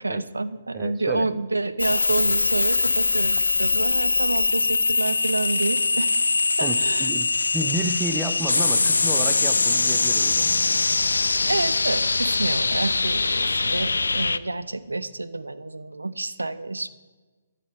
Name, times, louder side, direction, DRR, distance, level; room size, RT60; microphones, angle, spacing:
voice 1, 0.0-6.2 6.6-7.1 11.5-16.9, right 2 dB, 80° right, 13 dB, 0.7 m, -28 dB
voice 2, 0.7-1.3 6.6-10.6, right 3 dB, 10° right, 9 dB, 0.8 m, -31 dB
sound 1, 1.8-14.4, left 3 dB, 75° left, 0.5 m, -22 dB
14.0 x 8.3 x 4.5 m, 1.3 s
figure-of-eight pair, 130°, 0 cm